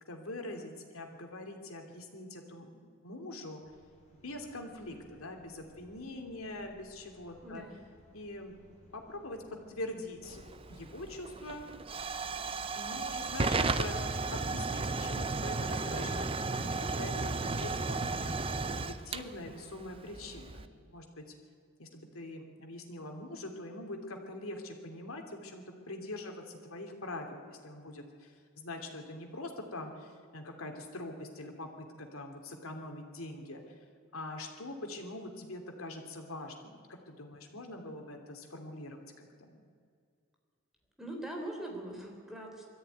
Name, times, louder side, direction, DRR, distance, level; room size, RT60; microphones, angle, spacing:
voice 1, 0.1-3.6 4.2-7.6 8.1-9.4 9.7-11.7 12.2-18.3 18.7-21.2 21.8-33.6 34.1-39.6, left 1 dB, 90° left, 3 dB, 2.9 m, -44 dB
sound 1, 3.6-14.0, equal, 35° left, 4.3 m, -61 dB
voice 2, 7.4-7.9 41.0-42.6, right 1 dB, ahead, 0 dB, 3.5 m, -42 dB
Hiss / Fire / Tick, 10.3-20.7, right 3 dB, 25° right, 0.7 m, -34 dB
22.0 x 14.0 x 9.4 m, 2.2 s
head